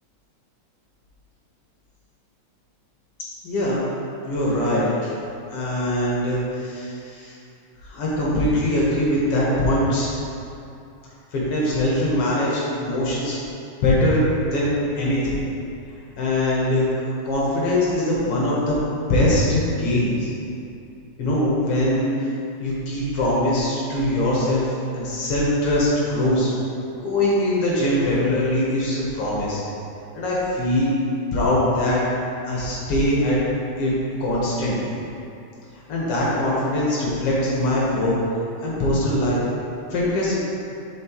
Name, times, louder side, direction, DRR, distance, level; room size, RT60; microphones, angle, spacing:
voice 1, 3.4-3.8 4.2-5.1 5.5-7.4 7.8-10.1 11.3-13.4 13.8-14.2 14.5-14.7 14.9-15.4 16.2-18.8 19.1-20.3 21.2-22.3 22.6-26.5 27.0-29.6 30.1-30.9 31.3-32.0 32.5-33.4 33.8-33.9 34.2-35.0 35.9-38.2 38.6-39.4 39.9-40.4, left 1 dB, 60° left, -6 dB, 1.7 m, -22 dB
7.3 x 5.5 x 3.0 m, 2.7 s
omnidirectional pair, 3.6 m